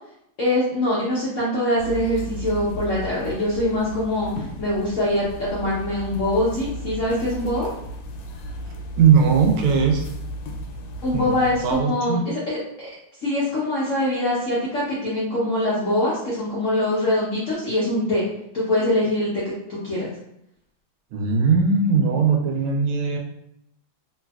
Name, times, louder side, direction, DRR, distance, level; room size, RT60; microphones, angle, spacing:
voice 1, 0.4-7.7 11.0-12.9 13.2-18.2 18.5-20.1, left 1 dB, 65° left, -8 dB, 0.7 m, -23 dB
sound 1, 1.8-11.8, equal, 85° left, 1.4 m, -35 dB
voice 2, 9.0-10.0 11.1-12.2 21.1-23.2, right 5 dB, 80° right, 1 dB, 1.4 m, -19 dB
3.3 x 2.7 x 2.3 m, 0.79 s
omnidirectional pair, 2.3 m